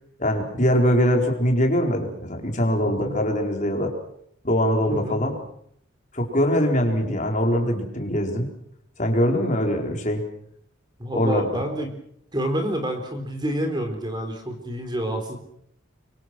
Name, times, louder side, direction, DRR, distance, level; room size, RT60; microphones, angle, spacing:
voice 1, 0.2-3.9 4.4-5.4 6.1-8.5 9.0-10.2 11.1-11.4, equal, 35° left, 2 dB, 4.4 m, -22 dB
voice 2, 2.8-3.2 4.9-5.2 11.0-11.9 12.3-15.4, right 1 dB, 20° right, 5 dB, 3.9 m, -28 dB
25.0 x 24.0 x 6.2 m, 0.70 s
head